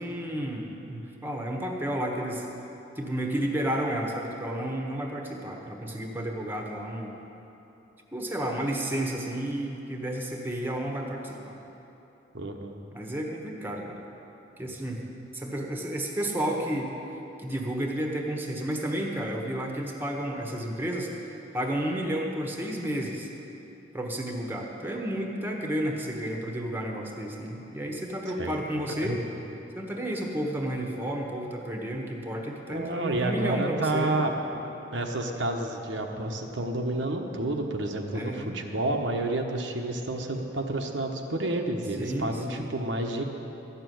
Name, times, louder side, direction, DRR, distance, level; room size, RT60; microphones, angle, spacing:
voice 1, 0.0-2.5 3.0-7.1 8.1-11.6 12.9-14.0 14.6-15.1 15.3-16.9 17.4-23.3 23.9-29.2 29.7-34.2 38.1-38.6 42.0-42.7, right 1 dB, 10° right, 0 dB, 1.2 m, -31 dB
voice 2, 12.3-12.8 28.4-28.6 29.0-29.2 32.7-34.3 34.9-43.2, right 2 dB, 75° right, 2 dB, 1.1 m, -30 dB
13.5 x 6.8 x 9.4 m, 3.0 s
head